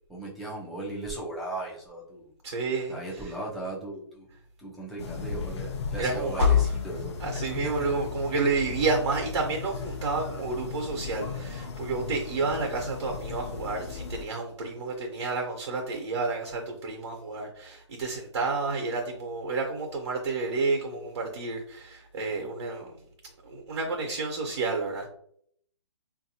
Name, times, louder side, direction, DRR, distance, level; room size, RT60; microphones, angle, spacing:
voice 1, 0.1-2.3 2.9-4.3 4.6-7.1, right 2 dB, ahead, -6 dB, 0.4 m, -37 dB
voice 2, 2.4-3.3 6.0-6.7 7.2-22.9 23.4-25.1, right 3 dB, 65° right, 2 dB, 0.9 m, -30 dB
sound 1, 5.0-14.2, left 6 dB, 60° left, 0.6 m, -32 dB
3.4 x 2.6 x 2.7 m, 0.66 s
hypercardioid pair, 165°, 16 cm